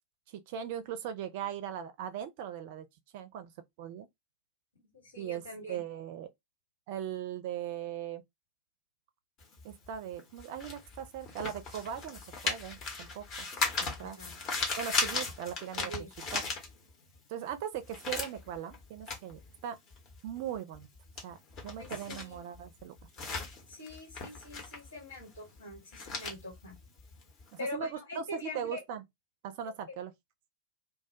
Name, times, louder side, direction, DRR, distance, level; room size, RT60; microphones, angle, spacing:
voice 1, 0.3-2.9 3.1-3.5 3.8-4.1 5.2-5.4 5.7-6.3 6.9-8.2 9.6-13.5 13.8-14.2 14.8-15.9 16.3-16.4 17.3-19.8 20.2-20.9 21.2-21.4 21.6-23.0 27.5-29.0 29.4-30.1, right 9 dB, 50° right, 0.4 m, -39 dB
voice 2, 4.7-5.8 14.0-14.4 15.8-16.1 21.8-22.5 23.7-26.8 27.6-28.8 29.9-30.0, left 2 dB, 70° left, 1.4 m, -44 dB
sound 1, 9.4-17.2 17.5-27.6, left 4 dB, 35° left, 0.8 m, -37 dB
2.2 x 2.1 x 2.6 m
figure-of-eight pair, 90°, 0 cm